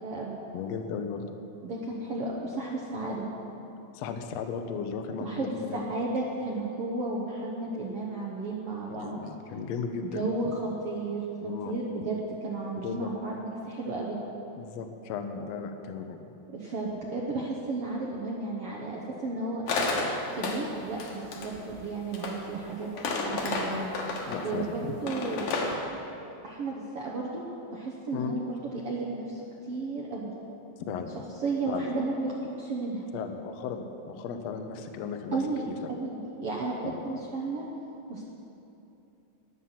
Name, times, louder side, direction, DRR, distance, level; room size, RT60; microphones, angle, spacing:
voice 1, 0.0-0.4 1.6-3.2 5.2-9.2 10.0-14.2 16.5-19.6 20.3-22.9 23.3-23.9 24.4-25.5 26.4-27.4 27.7-29.4 29.7-30.3 31.4-32.3 32.6-33.1 35.3-37.6 38.1-38.2, right 3 dB, 70° right, -2 dB, 1.4 m, -33 dB
voice 2, 0.5-1.3 3.9-5.9 8.9-10.5 11.4-11.7 12.0-12.1 12.8-13.1 14.6-16.2 24.2-25.0 28.1-28.3 30.9-31.3 31.7-31.9 33.1-35.9 36.8-37.2, left 6 dB, 80° left, 6 dB, 1.5 m, -36 dB
sound 1, 19.7-20.7 21.0-22.5 22.8-24.5 25.1-25.8, left 3 dB, 65° left, 2.8 m, -31 dB
21.0 x 7.7 x 5.8 m, 2.9 s
omnidirectional pair, 4.2 m